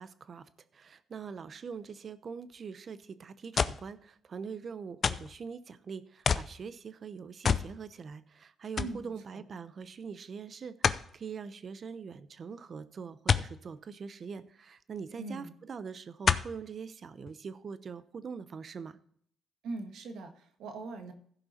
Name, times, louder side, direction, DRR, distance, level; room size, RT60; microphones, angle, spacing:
voice 1, 0.0-19.0, right 6 dB, 45° right, 13 dB, 0.8 m, -43 dB
sound 1, 3.6-3.9 5.0-5.4 6.2-6.5 7.4-7.7 8.1-8.2 8.8-9.0 10.8-11.1 13.3-13.5 15.0-15.1 16.2-16.6 17.3-17.4, left 6 dB, 45° left, 0.5 m, -27 dB
voice 2, 15.2-15.5 19.6-21.1, right 3 dB, 80° right, 6 dB, 1.5 m, -41 dB
15.5 x 5.5 x 4.3 m, 0.63 s
cardioid pair, 90°, 0 cm